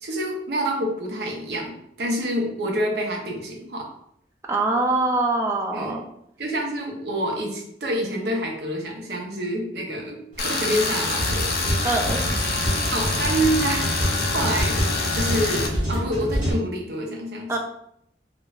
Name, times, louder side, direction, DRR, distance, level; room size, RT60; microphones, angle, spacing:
voice 1, 0.0-3.9 5.7-6.0 6.4-11.9 12.9-14.0 14.3-14.8 15.1-17.6, right 1 dB, 65° right, 1 dB, 0.6 m, -27 dB
voice 2, 4.5-6.0 11.8-12.2 17.5-17.6, right 2 dB, 15° right, 1 dB, 0.3 m, -23 dB
sound 1, 10.3-16.5, equal, 45° right, 1.4 m, -27 dB
Tools, 10.4-15.7, left 3 dB, 60° left, 0.5 m, -26 dB
2.9 x 2.1 x 2.3 m, 0.72 s
head